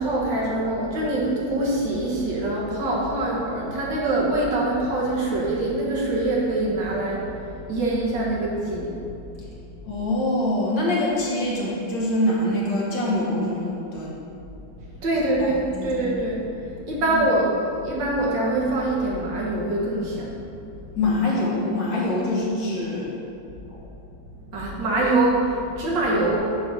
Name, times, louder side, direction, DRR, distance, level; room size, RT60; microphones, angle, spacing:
voice 1, 0.0-9.4 15.0-20.4 22.1-22.2 24.5-26.4, right 2 dB, 70° right, -4 dB, 2.0 m, -24 dB
voice 2, 9.9-14.2 15.4-16.0 16.9-17.3 21.0-23.2 23.7-23.8, left 1 dB, 75° left, -5 dB, 2.2 m, -25 dB
8.0 x 3.5 x 6.2 m, 2.8 s
omnidirectional pair, 2.0 m